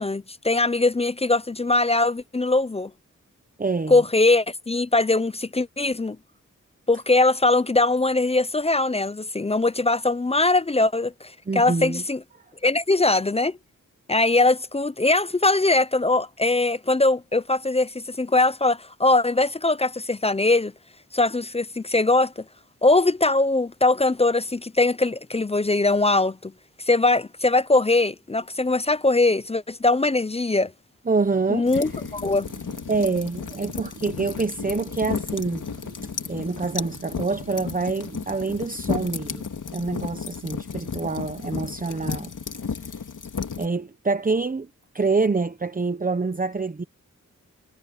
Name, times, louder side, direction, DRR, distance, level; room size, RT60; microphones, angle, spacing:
voice 1, 0.0-2.9 3.9-6.2 6.9-12.2 12.6-13.6 14.1-20.7 21.1-22.3 22.8-26.5 26.9-30.7 31.5-32.4, left 2 dB, 20° left, 0.4 m, -21 dB
voice 2, 3.6-4.0 11.5-12.0 31.1-31.9 32.9-35.6 36.3-39.4 39.7-42.3 43.6-44.7 44.9-46.8, right 4 dB, 25° right, 0.9 m, -26 dB
sound 1, 31.1-39.4, right 5 dB, 55° right, 4.1 m, -47 dB
sound 2, 31.7-43.7, left 6 dB, 75° left, 2.6 m, -33 dB
wide cardioid pair, 125°, 31 cm